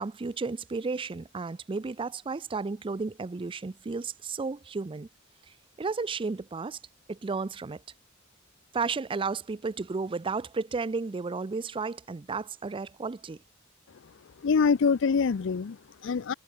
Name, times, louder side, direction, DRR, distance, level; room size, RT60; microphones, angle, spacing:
voice 1, 0.0-5.1 5.8-6.8 7.1-7.8 8.7-13.4, right 4 dB, 25° right, 0.4 m, -33 dB
voice 2, 14.4-16.3, left 5 dB, 65° left, 0.5 m, -25 dB
head